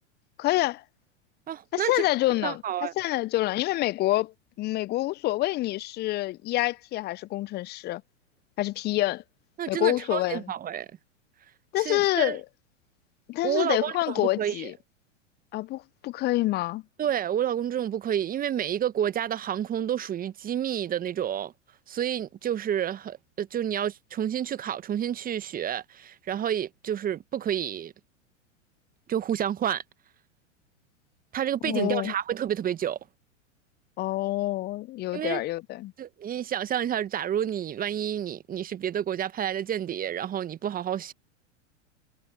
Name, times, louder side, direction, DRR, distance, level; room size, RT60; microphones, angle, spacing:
voice 1, 0.4-0.8 1.7-8.0 8.6-9.2 9.7-10.5 11.7-12.4 13.3-14.7 15.5-16.8 31.6-32.1 34.0-35.9, left 17 dB, 25° left, 0.6 m, -27 dB
voice 2, 1.5-2.0 2.4-2.9 9.6-10.9 11.8-12.4 13.4-14.7 17.0-21.5 21.9-27.9 29.1-29.8 31.3-33.0 35.1-35.4 36.0-41.1, right 10 dB, 25° right, 1.2 m, -29 dB
figure-of-eight pair, 100°, 38 cm